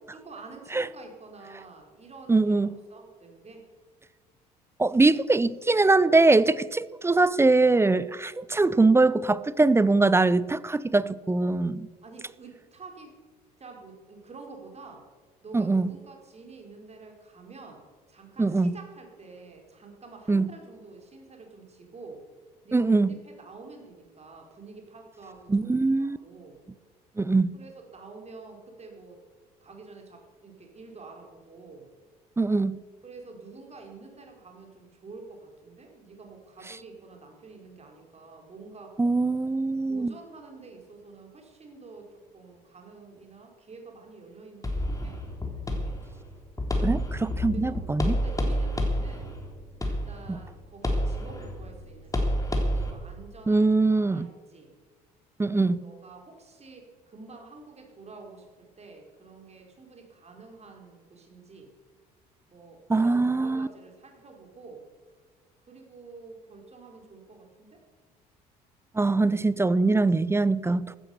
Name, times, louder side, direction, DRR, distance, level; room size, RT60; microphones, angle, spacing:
voice 1, 0.1-3.6 8.2-8.4 12.0-13.1 13.6-15.0 15.4-17.8 18.1-22.2 22.6-26.6 27.5-29.2 29.6-31.9 33.0-39.0 39.9-46.1 47.5-47.8 48.1-49.3 49.8-52.4 52.7-54.7 55.5-61.7 62.5-64.8 65.7-67.8, right 3 dB, 30° right, 4.6 m, -48 dB
voice 2, 2.3-2.7 4.8-11.9 15.5-15.9 18.4-18.7 20.3-20.5 22.7-23.1 25.5-26.2 27.2-27.5 32.4-32.8 39.0-40.1 46.8-48.2 50.3-50.4 53.5-54.3 55.4-55.8 62.9-63.7 69.0-71.0, right 3 dB, 10° right, 0.6 m, -22 dB
sound 1, 44.6-52.9, left 1 dB, 15° left, 3.6 m, -29 dB
15.0 x 12.5 x 6.8 m
figure-of-eight pair, 55°, 20 cm